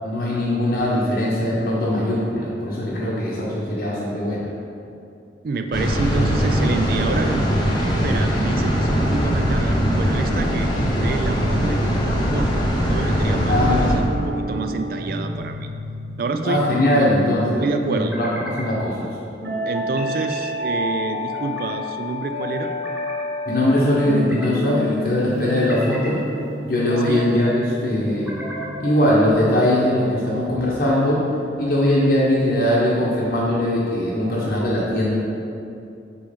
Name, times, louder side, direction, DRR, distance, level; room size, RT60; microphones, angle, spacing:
voice 1, 0.0-4.5 13.5-13.9 16.4-19.2 23.4-26.2 26.6-28.3 28.8-31.2 31.6-35.1, left 1 dB, 55° left, -6 dB, 0.9 m, -21 dB
voice 2, 5.4-15.7 16.2-16.7 17.6-18.2 19.7-22.7 27.1-27.3, right 3 dB, 55° right, 7 dB, 0.3 m, -28 dB
sound 1, 5.7-14.0, equal, 25° left, 0.8 m, -21 dB
sound 2, 13.3-29.3, left 1 dB, 70° right, 1.0 m, -31 dB
sound 3, 14.2-14.9 16.3-17.0 17.9-18.7 19.7-20.5 21.1-21.8 22.4-23.2 23.9-24.6 25.3-26.2 26.8-27.3 28.0-28.9, right 1 dB, 10° right, 0.8 m, -36 dB
5.2 x 4.5 x 5.1 m, 2.6 s
head